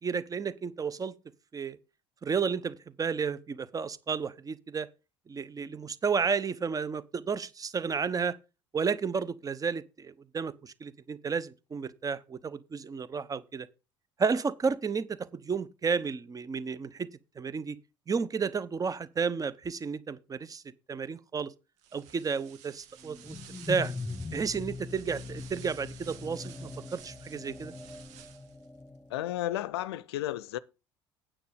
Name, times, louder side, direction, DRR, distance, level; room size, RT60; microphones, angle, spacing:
voice 1, 0.0-1.1 1.5-1.8 2.2-4.9 5.3-8.4 8.7-13.7 14.2-17.1 17.4-17.8 18.1-20.6 20.9-21.5 21.9-23.4 23.7-23.9 24.3-27.7, right 5 dB, 25° right, 0.9 m, -32 dB
sound 1, 21.8-28.7, right 9 dB, 60° right, 1.8 m, -53 dB
sound 2, 23.0-29.3, left 3 dB, 10° left, 1.5 m, -41 dB
voice 2, 29.1-30.6, left 14 dB, 70° left, 0.6 m, -33 dB
9.3 x 7.3 x 5.1 m
figure-of-eight pair, 60°, 14 cm